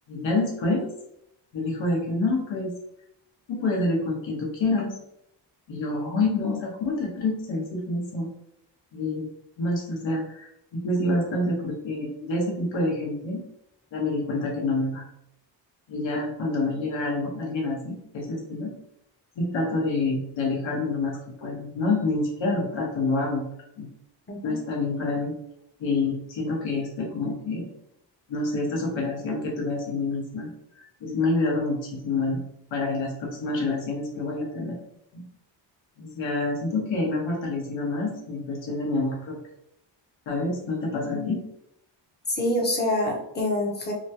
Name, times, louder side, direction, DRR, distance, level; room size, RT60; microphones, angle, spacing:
voice 1, 0.1-0.8 1.5-2.7 3.5-4.9 5.7-8.3 8.9-9.3 9.6-13.4 13.9-15.0 15.9-18.7 19.4-23.5 23.8-23.9 24.4-25.3 25.8-27.7 28.3-32.4 32.7-34.8 35.1-35.3 36.0-39.4 40.3-41.4, left 2 dB, 75° left, -1 dB, 1.1 m, -27 dB
voice 2, 42.3-43.9, left 1 dB, 20° left, -1 dB, 0.7 m, -26 dB
2.9 x 2.3 x 2.7 m, 0.78 s
wide cardioid pair, 140°, 45 cm